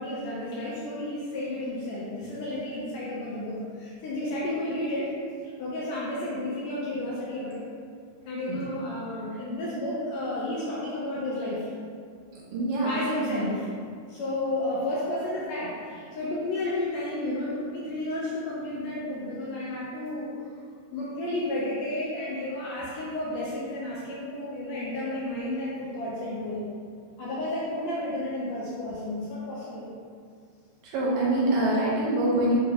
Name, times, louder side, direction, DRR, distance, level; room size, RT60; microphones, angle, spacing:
voice 1, 0.0-5.1 5.6-7.6 8.3-11.7 12.8-13.7 14.1-20.3 20.9-26.7 27.2-29.9, left 1 dB, 80° left, -7 dB, 1.6 m, -32 dB
voice 2, 12.5-13.0 13.3-13.5 30.8-32.6, right 1 dB, 75° right, -6 dB, 2.1 m, -25 dB
5.9 x 2.2 x 3.3 m, 2.1 s
omnidirectional pair, 3.6 m